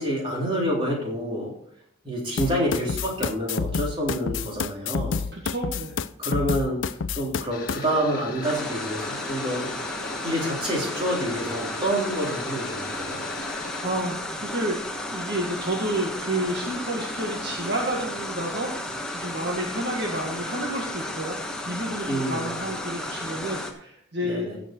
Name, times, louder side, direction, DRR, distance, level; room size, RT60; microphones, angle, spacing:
voice 1, 0.0-1.5 2.0-5.2 6.2-6.8 7.2-9.7 10.2-13.2 22.1-22.5 24.2-24.6, equal, 25° right, -3 dB, 3.6 m, -27 dB
sound 1, 2.4-7.8, left 5 dB, 70° left, 0.5 m, -29 dB
voice 2, 5.3-6.0 13.4-14.8 15.0-21.4 21.7-24.5, right 1 dB, 55° right, -1 dB, 1.8 m, -30 dB
sound 2, 7.5-13.9, left 4 dB, 45° left, 1.6 m, -38 dB
sound 3, 8.4-23.7, left 1 dB, 5° left, 1.2 m, -33 dB
16.0 x 6.3 x 4.5 m, 0.67 s
head